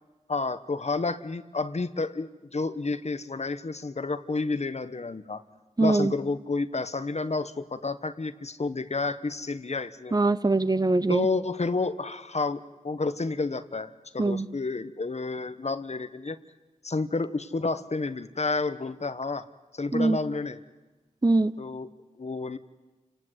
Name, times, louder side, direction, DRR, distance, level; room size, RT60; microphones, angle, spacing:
voice 1, 0.3-5.4 5.8-10.2 11.1-16.4 16.8-19.5 19.7-20.6 21.6-21.9 22.2-22.6, left 3 dB, 55° left, 12 dB, 1.2 m, -30 dB
voice 2, 5.8-6.1 10.1-11.3 14.2-14.5 19.9-20.2 21.2-21.5, right 2 dB, 30° right, 15 dB, 0.7 m, -22 dB
29.0 x 18.5 x 8.1 m, 1.2 s
cardioid pair, 40°, 13 cm